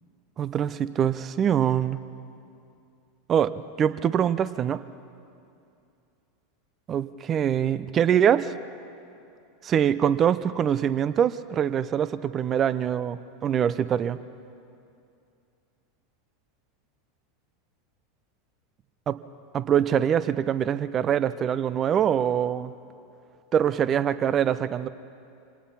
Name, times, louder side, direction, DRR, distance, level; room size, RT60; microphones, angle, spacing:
voice 1, 0.4-2.0 3.3-4.8 6.9-8.5 9.6-14.2 19.1-19.2 19.5-22.7 23.5-24.9, right 9 dB, 35° right, 15 dB, 0.7 m, -24 dB
25.5 x 18.5 x 5.7 m, 2.6 s
figure-of-eight pair, 85°, 0 cm